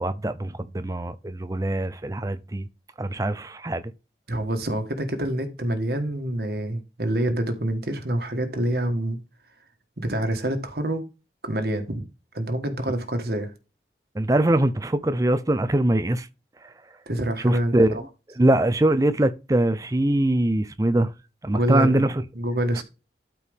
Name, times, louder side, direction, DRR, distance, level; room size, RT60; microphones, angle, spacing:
voice 1, 0.0-2.6 3.0-3.8 14.2-16.3 16.6-16.7 17.4-18.0 18.4-21.1 21.4-22.1, right 1 dB, 20° right, 0.5 m, -22 dB
voice 2, 4.3-9.2 10.0-11.0 11.4-12.0 12.3-13.5 17.1-17.8 21.5-22.1 22.3-22.8, right 1 dB, 65° right, 1.4 m, -26 dB
12.5 x 4.6 x 3.5 m
head